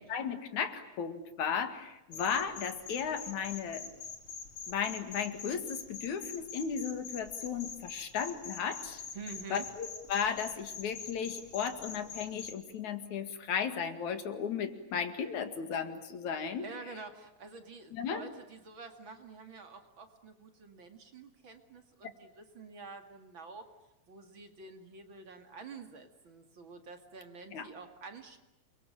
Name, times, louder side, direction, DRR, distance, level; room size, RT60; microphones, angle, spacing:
voice 1, 0.0-3.9 4.7-9.0 9.5-16.7 17.9-18.2 27.5-27.7, left 7 dB, 80° left, 9 dB, 3.5 m, -35 dB
sound 1, 2.1-12.5, left 6 dB, 50° left, 3.4 m, -45 dB
voice 2, 9.1-9.7 16.6-23.7 24.1-28.4, right 4 dB, 45° right, 7 dB, 2.7 m, -48 dB
28.5 x 23.5 x 8.9 m, 0.94 s
omnidirectional pair, 3.4 m